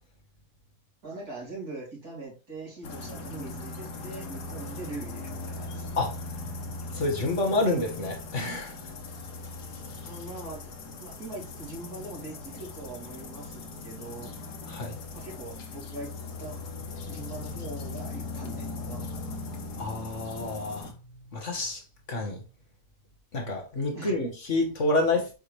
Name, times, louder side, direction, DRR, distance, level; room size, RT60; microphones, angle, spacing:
voice 1, 1.0-5.9 10.0-10.7 11.0-14.3 15.1-16.1 16.4-16.6 17.1-19.4 23.9-24.2, right 2 dB, 65° right, 3.8 m, -42 dB
sound 1, 2.8-20.9, left 3 dB, 90° left, 1.8 m, -39 dB
voice 2, 6.9-8.8 14.7-15.0 19.8-20.9 21.3-22.4 23.3-25.3, left 2 dB, 50° left, 1.6 m, -28 dB
7.7 x 4.7 x 3.2 m
omnidirectional pair, 1.7 m